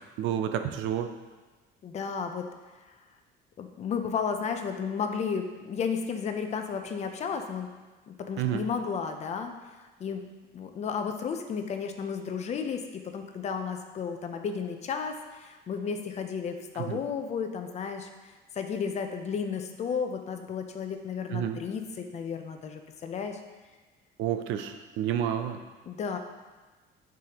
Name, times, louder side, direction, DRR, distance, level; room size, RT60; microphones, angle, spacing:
voice 1, 0.2-1.1 8.4-8.6 16.8-17.0 21.3-21.6 24.2-25.6, right 10 dB, 70° right, 8 dB, 0.6 m, -30 dB
voice 2, 1.8-2.5 3.6-7.7 8.1-10.2 10.5-12.8 13.1-18.1 18.6-23.4 25.9-26.2, left 6 dB, 35° left, 5 dB, 0.5 m, -33 dB
11.5 x 4.9 x 2.9 m, 1.3 s
cardioid pair, 170°, 20 cm